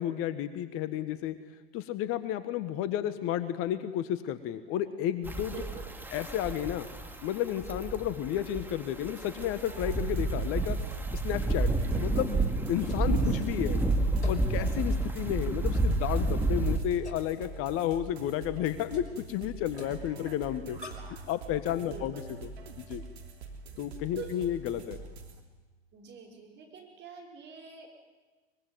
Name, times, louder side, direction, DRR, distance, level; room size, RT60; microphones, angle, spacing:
voice 1, 0.0-1.4 1.7-5.5 6.1-6.9 7.2-10.8 11.1-13.8 14.3-20.8 21.3-22.5 22.8-23.0 23.8-25.0, left 11 dB, 40° left, 12 dB, 1.4 m, -32 dB
sound 1, 5.2-16.8, right 2 dB, 5° right, 2.5 m, -30 dB
voice 2, 5.5-5.9 12.8-12.9 13.2-13.4 21.8-22.3 24.2-24.3 25.9-27.9, right 6 dB, 35° right, 2 dB, 5.9 m, -45 dB
sound 2, 9.4-25.4, right 4 dB, 75° right, 3.3 m, -45 dB
sound 3, 12.1-21.2, left 4 dB, 90° left, 3.8 m, -50 dB
23.5 x 22.0 x 9.5 m, 1.3 s
hypercardioid pair, 95°, 33 cm